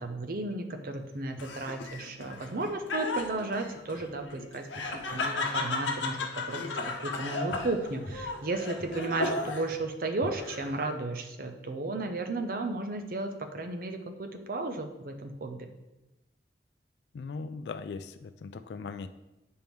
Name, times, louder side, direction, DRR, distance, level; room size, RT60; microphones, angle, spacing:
voice 1, 0.0-4.7 4.9-15.6, right 2 dB, 50° right, 5 dB, 0.6 m, -34 dB
Laughter, 1.4-9.8 10.2-10.9, left 3 dB, 85° left, 0.9 m, -35 dB
voice 2, 17.1-19.1, left 4 dB, 65° left, 9 dB, 0.3 m, -39 dB
9.1 x 4.4 x 3.5 m, 0.99 s
head